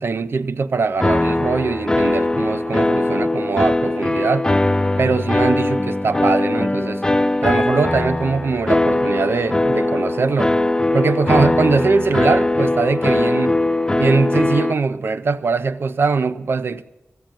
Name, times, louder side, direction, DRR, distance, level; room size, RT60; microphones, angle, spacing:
voice 1, 0.0-4.5 5.0-7.0 7.4-10.5 10.9-13.6 14.0-16.8, right 4 dB, 60° right, 0.5 m, -21 dB
sound 1, 1.0-14.7, left 2 dB, 15° left, 0.4 m, -20 dB
15.0 x 7.7 x 8.9 m
wide cardioid pair, 130°, 5 cm